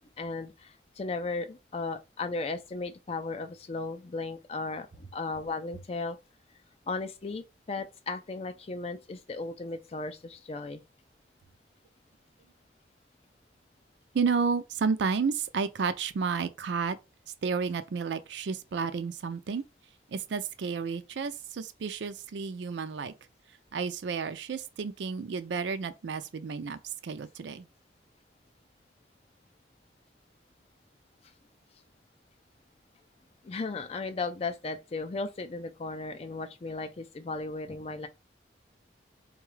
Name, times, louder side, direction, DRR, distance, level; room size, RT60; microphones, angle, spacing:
voice 1, 0.2-6.2 6.9-10.8 33.4-38.1, left 3 dB, 35° left, 0.4 m, -36 dB
voice 2, 14.1-17.0 17.4-19.6 20.1-23.1 23.7-27.7, right 5 dB, 75° right, 0.4 m, -31 dB
3.9 x 2.3 x 3.1 m
head